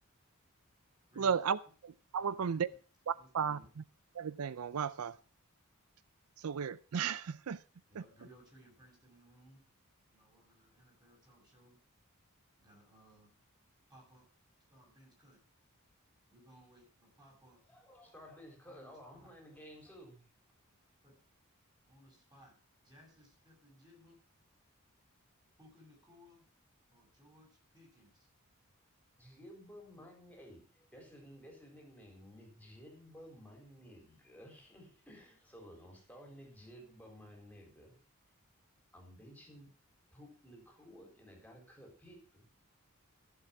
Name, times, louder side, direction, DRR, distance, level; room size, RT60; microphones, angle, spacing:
voice 1, 1.2-1.6 2.1-2.7 3.3-3.6 4.2-5.1 6.4-7.6, right 7 dB, 85° right, 0.5 m, -33 dB
voice 2, 2.2-2.6 3.2-3.7 7.9-9.6 10.1-11.8 12.6-13.3 13.9-14.3 14.7-15.4 16.3-17.6 18.6-19.3 21.0-21.1 21.9-22.5 22.8-24.2 25.6-26.5 26.9-28.3 29.9-30.1, equal, 20° right, 6.9 m, -61 dB
voice 3, 17.7-20.3 29.2-37.9 38.9-39.7 40.1-42.4, equal, 5° left, 4.1 m, -54 dB
14.5 x 7.5 x 5.9 m
head